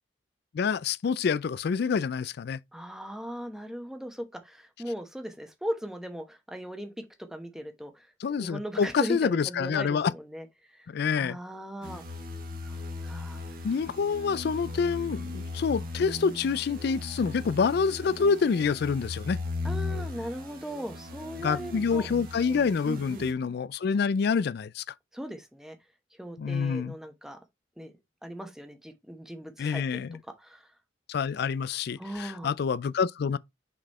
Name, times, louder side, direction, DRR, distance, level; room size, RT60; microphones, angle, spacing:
voice 1, 0.5-2.6 8.2-10.1 10.9-11.4 13.6-19.4 21.4-24.8 26.4-26.9 29.6-30.2 31.1-33.4, left 5 dB, 60° left, 0.3 m, -27 dB
voice 2, 2.7-8.1 8.4-10.5 10.8-10.9 11.1-12.0 12.6-13.4 19.6-22.1 22.8-23.3 25.1-25.8 26.2-27.4 27.8-27.9 28.2-30.1 30.4-30.7 32.0-32.5, equal, 5° right, 1.1 m, -38 dB
sound 1, 11.8-23.3, left 2 dB, 50° right, 1.5 m, -38 dB
6.3 x 4.1 x 4.2 m
head